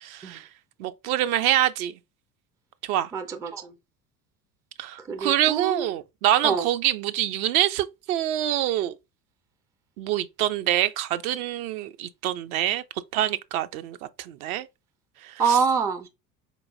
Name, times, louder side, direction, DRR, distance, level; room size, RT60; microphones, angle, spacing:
voice 1, 0.0-0.5 0.8-1.9 2.8-3.1 4.8-8.9 10.0-12.8 13.1-14.7 15.2-15.6, right 13 dB, 60° right, 0.5 m, -25 dB
voice 2, 3.1-3.7 5.1-5.9 6.4-6.7 15.4-16.1, right 6 dB, 10° right, 0.3 m, -25 dB
4.3 x 3.0 x 2.5 m
figure-of-eight pair, 65°, 49 cm